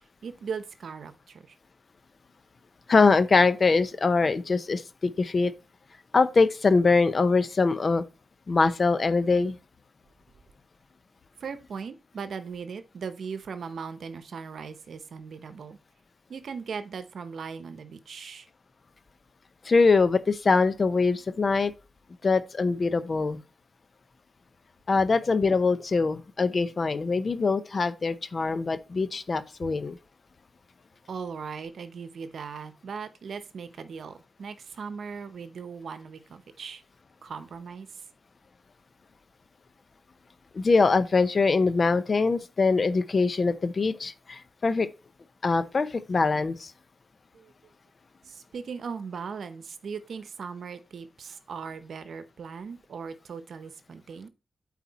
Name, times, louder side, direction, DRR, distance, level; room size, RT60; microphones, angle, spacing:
voice 1, 0.2-1.6 11.4-15.8 16.3-18.5 31.1-36.8 37.2-38.0 47.3-47.5 48.2-54.3, right 6 dB, 75° right, 0.8 m, -38 dB
voice 2, 2.9-5.5 6.1-8.0 8.5-9.6 19.6-21.7 22.2-23.4 24.9-30.0 40.5-44.9 45.4-46.7, left 4 dB, 45° left, 0.7 m, -23 dB
8.4 x 4.3 x 4.2 m
cardioid pair, 80°, 0 cm